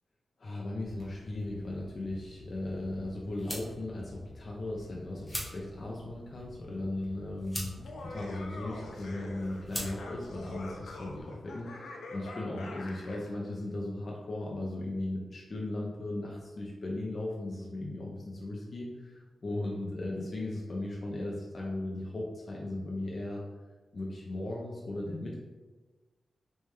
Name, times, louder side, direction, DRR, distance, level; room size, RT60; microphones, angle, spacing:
voice 1, 0.4-23.4 23.9-25.3, left 2 dB, 45° left, -4 dB, 0.6 m, -37 dB
sound 1, 0.8-11.2, equal, 5° left, 0.9 m, -45 dB
Laughter, 7.7-13.3, left 2 dB, 90° left, 0.5 m, -45 dB
3.3 x 3.1 x 3.3 m, 1.3 s
wide cardioid pair, 115°, 0 cm